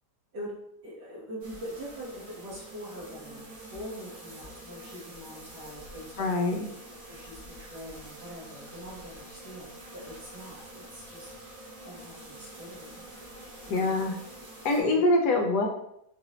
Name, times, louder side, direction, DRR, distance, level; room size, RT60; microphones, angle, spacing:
voice 1, 0.8-6.6 7.0-11.3 11.8-13.1 13.6-14.0, equal, 70° right, -4 dB, 1.8 m, -43 dB
sound 1, 1.4-14.8, right 1 dB, 85° right, 1.9 m, -46 dB
voice 2, 6.2-6.7 13.7-14.1 14.6-15.7, left 2 dB, 75° left, 2 dB, 1.1 m, -24 dB
4.6 x 2.5 x 3.0 m, 0.76 s
omnidirectional pair, 1.9 m